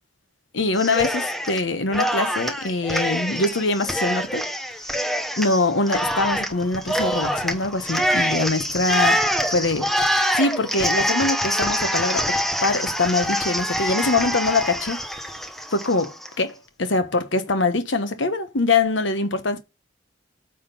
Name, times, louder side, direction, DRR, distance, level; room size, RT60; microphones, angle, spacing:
voice 1, 0.5-4.5 5.4-9.2 9.5-12.4 12.6-15.0 15.7-19.6, left 3 dB, 75° left, 1.1 m, -23 dB
Cheering, 0.8-1.6 1.9-16.3, equal, ahead, 0.9 m, -25 dB
8.7 x 3.7 x 5.3 m
head